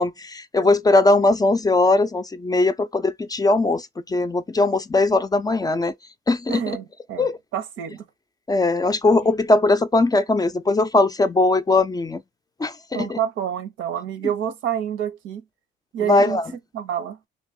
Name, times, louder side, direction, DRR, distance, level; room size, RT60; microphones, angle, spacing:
voice 1, 0.0-5.9 6.3-6.6 7.2-7.4 8.5-12.2 12.6-13.2 16.1-16.5, left 2 dB, 20° left, 0.4 m, -20 dB
voice 2, 6.5-7.3 7.5-8.0 12.9-15.4 15.9-16.4 16.7-17.2, right 9 dB, 85° right, 0.7 m, -27 dB
2.9 x 2.9 x 3.6 m
cardioid pair, 90°, 20 cm